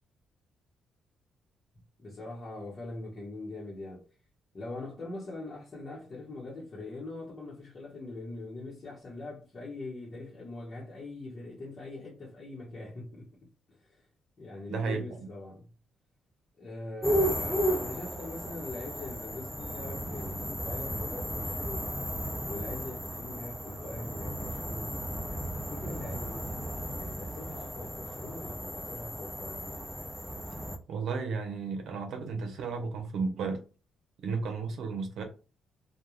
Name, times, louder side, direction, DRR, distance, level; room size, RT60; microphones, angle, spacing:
voice 1, 2.0-4.0 4.5-13.3 13.7-14.1 14.4-15.7 16.6-22.0 22.4-25.0 25.5-26.6 27.0-30.0, left 2 dB, 40° left, 1.0 m, -42 dB
voice 2, 14.7-15.2 30.9-33.6 34.2-35.2, right 4 dB, 70° right, 0.6 m, -33 dB
sound 1, 17.0-30.8, equal, ahead, 0.4 m, -34 dB
2.3 x 2.2 x 3.0 m
cardioid pair, 90°, 0 cm